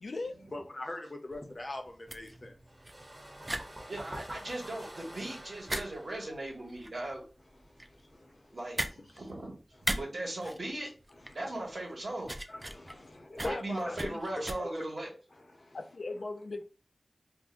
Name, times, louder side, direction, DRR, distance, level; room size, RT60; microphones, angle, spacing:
voice 1, 0.0-0.5 13.4-14.0 15.7-16.6, left 2 dB, 75° left, 0.4 m, -38 dB
voice 2, 0.5-2.6 3.2-3.9 7.5-8.6 9.8-9.9 11.1-11.5 12.5-13.5 14.4-14.9 15.3-15.8 16.1-16.2, left 1 dB, 45° left, 0.7 m, -43 dB
sound 1, 1.3-14.5, right 1 dB, 20° right, 0.3 m, -40 dB
sound 2, 2.6-8.1, right 1 dB, 40° right, 1.0 m, -48 dB
voice 3, 3.9-7.2 8.5-9.5 9.8-10.9 11.3-12.3 13.4-15.1, right 1 dB, 65° right, 1.2 m, -38 dB
2.5 x 2.2 x 3.7 m
wide cardioid pair, 70°, 0 cm